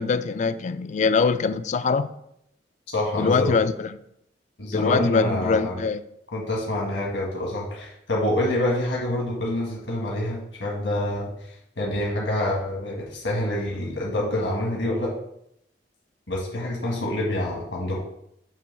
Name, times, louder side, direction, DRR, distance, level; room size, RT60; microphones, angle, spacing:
voice 1, 0.0-2.1 3.2-4.0 4.7-6.0, left 5 dB, 40° left, 0.3 m, -23 dB
voice 2, 2.9-3.5 4.6-5.8 6.3-15.1 16.3-18.0, left 1 dB, 85° left, 1.5 m, -27 dB
7.5 x 3.1 x 5.3 m
head